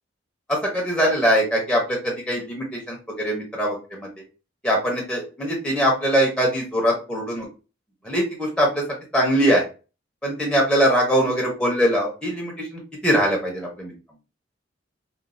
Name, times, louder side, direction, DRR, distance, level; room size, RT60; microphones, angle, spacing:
voice 1, 0.5-4.1 4.6-7.5 8.0-8.8 9.1-9.6 10.2-13.9, equal, 5° left, -2 dB, 0.6 m, -22 dB
3.0 x 2.1 x 2.5 m, 0.33 s
head